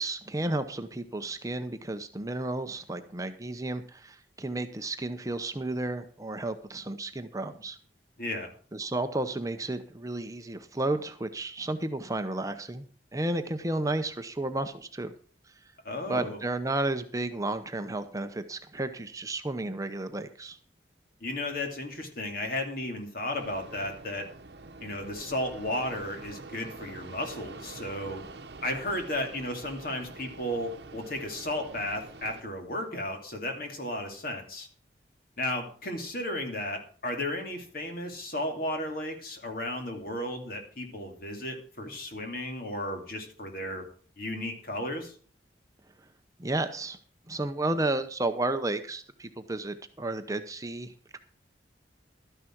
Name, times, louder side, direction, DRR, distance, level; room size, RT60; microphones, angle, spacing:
voice 1, 0.0-7.8 8.7-12.9 13.1-15.1 16.1-20.6 46.4-47.0 47.3-51.2, right 2 dB, 20° right, 8 dB, 0.7 m, -32 dB
voice 2, 8.2-8.5 15.8-16.4 21.2-24.3 24.8-28.2 28.6-34.7 35.4-43.9 44.2-45.1, left 1 dB, 55° left, 4 dB, 2.6 m, -34 dB
Fixed-wing aircraft airplane, 23.3-32.4, right 3 dB, 65° right, 1.0 m, -46 dB
12.5 x 10.0 x 4.5 m, 0.44 s
head